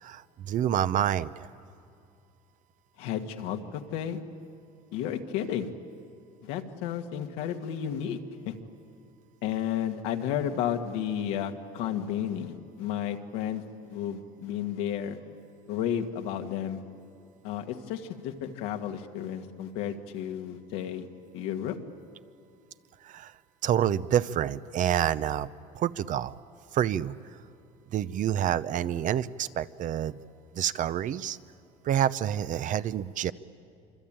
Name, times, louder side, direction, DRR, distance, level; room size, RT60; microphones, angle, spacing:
voice 1, 0.0-1.5 23.0-23.3 23.6-25.5 25.7-26.4 26.7-27.1 27.9-30.2 30.5-31.4 31.8-33.3, right 10 dB, 50° right, 15 dB, 0.8 m, -28 dB
voice 2, 3.0-4.2 4.9-5.7 6.4-8.2 8.5-8.6 9.4-13.6 13.9-15.2 15.7-16.8 17.4-21.1 21.3-21.8, left 9 dB, 80° left, 5 dB, 1.9 m, -32 dB
26.0 x 25.0 x 8.9 m, 2.5 s
supercardioid pair, 95°, 17 cm